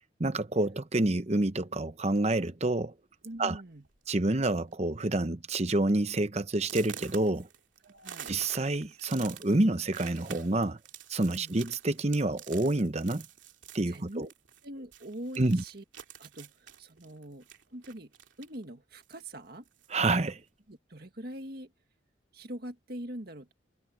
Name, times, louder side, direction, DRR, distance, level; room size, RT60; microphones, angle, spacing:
voice 1, 0.2-2.9 3.4-3.6 4.1-7.5 8.3-10.8 11.1-13.2 13.7-14.3 15.4-15.6 19.9-20.4, right 2 dB, 35° right, 0.9 m, -28 dB
sound 1, 2.1-2.4 3.2-3.3 3.7-4.0 4.3-4.7 5.1-5.2 5.7-5.8 6.6-14.7 14.9-18.6 19.0-20.0, right 9 dB, 85° right, 2.5 m, -48 dB
voice 2, 3.2-3.8 7.8-8.3 11.2-11.6 13.9-14.3 14.6-15.8 16.2-18.1 18.4-19.7 20.7-21.7 22.3-23.5, right 1 dB, 55° right, 2.0 m, -43 dB
head